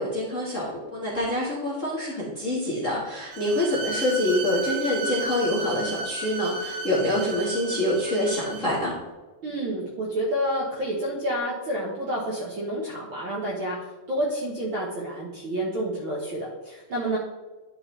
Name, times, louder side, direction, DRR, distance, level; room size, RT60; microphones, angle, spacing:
voice 1, 0.0-8.9, left 1 dB, 35° left, -5 dB, 1.3 m, -26 dB
Bowed string instrument, 3.3-8.8, right 2 dB, 75° right, 2.2 m, -34 dB
voice 2, 9.4-13.8 14.1-17.2, right 1 dB, 55° right, -4 dB, 1.4 m, -29 dB
11.0 x 5.0 x 3.3 m, 1.2 s
omnidirectional pair, 3.7 m